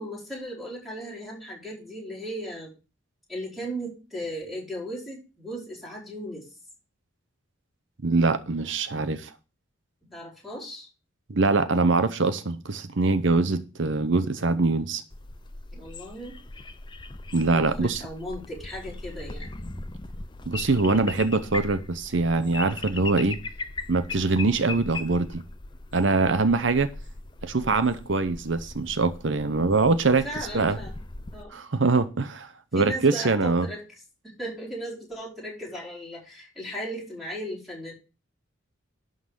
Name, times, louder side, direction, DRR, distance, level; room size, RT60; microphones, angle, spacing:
voice 1, 0.0-2.7 3.3-6.5 10.1-10.9 15.7-16.4 17.5-19.6 30.2-31.0 31.3-31.6 32.7-33.8 34.2-37.9, equal, ahead, 4.8 m, -36 dB
voice 2, 8.0-9.3 11.3-15.0 17.3-18.0 20.5-23.4 23.9-25.4 25.9-26.9 27.4-30.2 30.5-30.8 31.5-33.7, right 3 dB, 65° right, 0.8 m, -23 dB
sound 1, 15.1-31.4, left 3 dB, 25° left, 0.6 m, -39 dB
11.5 x 3.9 x 7.5 m
head